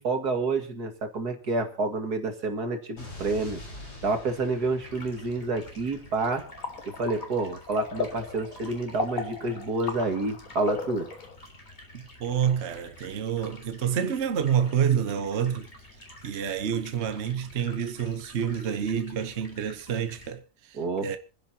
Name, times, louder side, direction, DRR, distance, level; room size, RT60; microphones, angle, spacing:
voice 1, 0.0-3.6 4.0-6.4 6.8-11.1 20.7-21.2, right 3 dB, 70° right, 2.6 m, -29 dB
Explosion, 3.0-7.0, left 2 dB, 75° left, 5.7 m, -45 dB
Stream, 4.8-20.3, left 1 dB, 40° left, 4.0 m, -50 dB
sound 1, 6.3-11.4, left 4 dB, 55° left, 1.9 m, -36 dB
voice 2, 11.9-15.7 16.2-21.2, right 8 dB, 50° right, 1.2 m, -28 dB
27.5 x 10.5 x 2.8 m
omnidirectional pair, 1.7 m